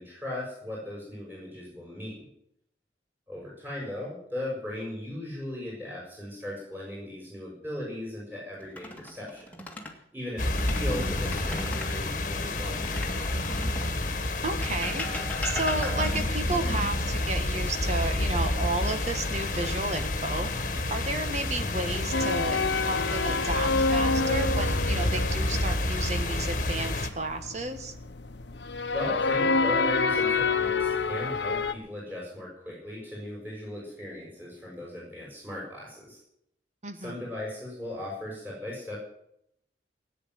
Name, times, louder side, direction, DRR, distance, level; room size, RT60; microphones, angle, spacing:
voice 1, 0.0-2.3 3.3-9.5 10.1-13.4 28.9-36.2 36.9-39.0, left 1 dB, 10° right, -4 dB, 6.8 m, -37 dB
sound 1, 8.6-10.0 10.4-12.0 12.8-14.0 14.6-16.4 18.3-19.0 19.4-19.7 22.6-23.2 23.9-24.5, left 2 dB, 10° left, 2.0 m, -38 dB
sound 2, 10.4-27.1, left 2 dB, 45° left, 1.7 m, -29 dB
voice 2, 10.5-10.8 14.4-20.5 20.9-27.9 36.8-37.2, right 2 dB, 40° right, 7 dB, 1.6 m, -32 dB
sound 3, 22.1-31.7, left 3 dB, 75° left, 1.1 m, -28 dB
18.5 x 9.6 x 7.9 m, 0.73 s
head